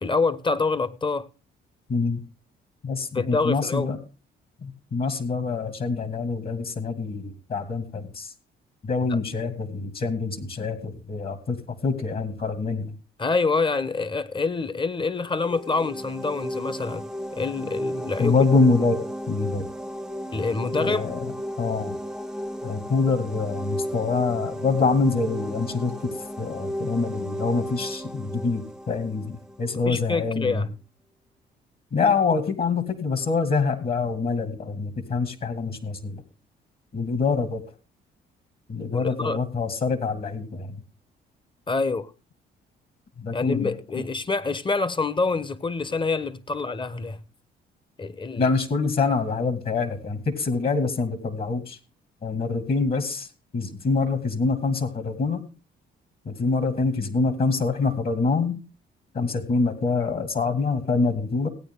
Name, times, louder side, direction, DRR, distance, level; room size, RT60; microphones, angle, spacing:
voice 1, 0.0-1.3 3.1-3.9 9.1-9.2 13.2-17.0 17.3-18.4 20.3-21.0 29.8-30.7 38.9-39.4 41.7-42.1 43.3-47.2 48.0-48.5, left 4 dB, 25° left, 1.0 m, -26 dB
voice 2, 1.9-2.2 2.8-4.0 4.6-8.3 8.8-12.9 18.2-19.7 20.8-21.3 21.6-22.0 22.6-26.1 26.4-30.6 31.9-36.2 36.9-37.6 38.7-40.7 43.2-43.7 44.0-44.1 48.4-51.8 52.2-53.3 53.5-55.4 56.3-58.6 59.1-61.5, left 4 dB, 50° left, 2.2 m, -25 dB
sound 1, 15.3-29.9, equal, 5° right, 0.7 m, -34 dB
17.0 x 9.2 x 3.7 m
supercardioid pair, 75°, 20 cm